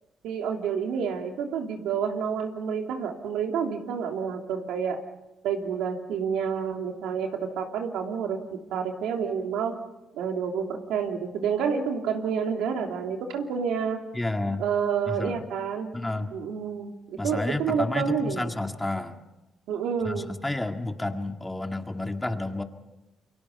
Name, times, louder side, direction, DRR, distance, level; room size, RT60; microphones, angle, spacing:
voice 1, 0.2-5.0 5.4-9.7 10.1-14.0 14.6-15.9 16.3-18.5 19.7-20.3, right 6 dB, 90° right, 3 dB, 2.9 m, -29 dB
voice 2, 14.1-14.6 15.1-15.4 15.9-16.3 17.2-19.2 20.1-22.6, left 2 dB, 10° left, 5 dB, 2.0 m, -30 dB
29.5 x 23.5 x 5.5 m, 0.98 s
cardioid pair, 90°, 0 cm